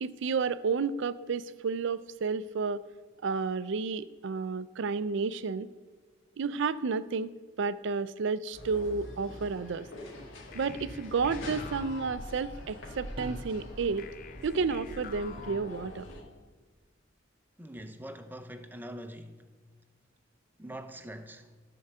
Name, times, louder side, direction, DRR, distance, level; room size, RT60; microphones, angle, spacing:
voice 1, 0.0-2.8 3.2-5.7 6.4-9.9 10.5-14.1 14.4-16.1, right 5 dB, 65° right, 0.4 m, -31 dB
sound 1, 8.5-16.2, left 1 dB, 90° left, 2.1 m, -44 dB
sound 2, 10.5-13.0 14.0-16.5, left 6 dB, 45° left, 0.4 m, -49 dB
sound 3, 10.7-11.0 13.2-13.8 15.4-15.7 17.8-18.3, right 1 dB, 25° right, 1.1 m, -46 dB
voice 2, 17.6-19.4 20.6-21.5, right 1 dB, 10° right, 0.6 m, -43 dB
14.0 x 4.7 x 6.6 m
head